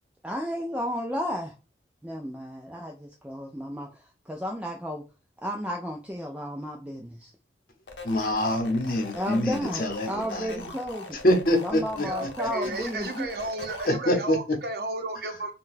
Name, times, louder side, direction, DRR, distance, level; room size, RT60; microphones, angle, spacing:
voice 1, 0.2-1.6 2.0-5.0 5.4-7.3 9.1-11.2 11.6-13.3, equal, 5° right, 0.3 m, -33 dB
sound 1, 7.9-13.9, left 3 dB, 85° left, 0.7 m, -42 dB
voice 2, 8.0-10.7 11.2-12.3 13.9-14.4, left 1 dB, 50° left, 0.8 m, -25 dB
voice 3, 12.0-15.5, right 2 dB, 60° right, 0.7 m, -33 dB
3.7 x 2.2 x 2.5 m
head